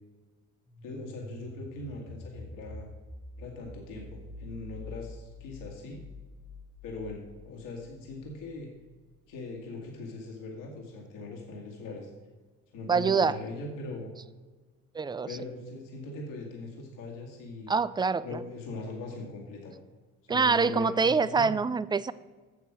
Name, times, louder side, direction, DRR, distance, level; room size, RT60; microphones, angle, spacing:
sound 1, 0.7-9.4, left 2 dB, 20° left, 1.3 m, -47 dB
voice 1, 0.8-2.9 3.4-6.0 6.8-8.7 9.3-12.1 12.7-14.1 15.3-17.7 18.2-19.7 20.2-21.6, left 2 dB, 75° left, 0 dB, 2.1 m, -40 dB
voice 2, 12.9-13.4 14.9-15.3 17.7-18.4 20.3-22.1, right 5 dB, 15° right, 17 dB, 0.3 m, -25 dB
8.3 x 6.9 x 6.1 m, 1.4 s
supercardioid pair, 75°, 32 cm